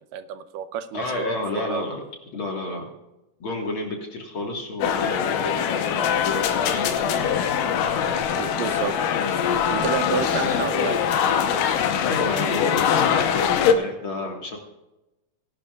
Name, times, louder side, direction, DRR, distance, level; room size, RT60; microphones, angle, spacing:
voice 1, 0.1-1.3 1.5-1.9 8.4-9.0 9.7-11.0, right 9 dB, 85° right, 11 dB, 2.3 m, -29 dB
voice 2, 0.9-2.0 2.3-2.9 3.4-7.4 10.1-10.7 12.0-14.6, left 2 dB, 45° left, 1 dB, 2.0 m, -31 dB
sound 1, 4.8-13.7, left 8 dB, 80° left, 2.5 m, -22 dB
20.0 x 11.5 x 2.4 m, 0.97 s
omnidirectional pair, 3.8 m